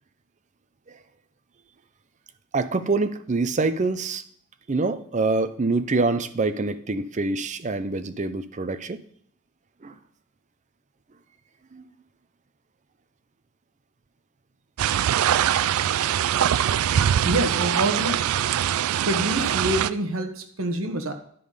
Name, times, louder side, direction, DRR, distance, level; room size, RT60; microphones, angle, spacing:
voice 1, 2.5-4.2 4.7-9.0 9.8-10.0 11.7-11.8 15.9-16.1, right 3 dB, 35° right, 11 dB, 0.5 m, -25 dB
Water Lap Horseshoe Lake, 14.8-19.9, right 10 dB, 90° right, 0.3 m, -23 dB
voice 2, 17.2-18.2 19.0-21.1, right 1 dB, 70° right, 6 dB, 1.2 m, -26 dB
10.0 x 5.4 x 5.0 m, 0.62 s
head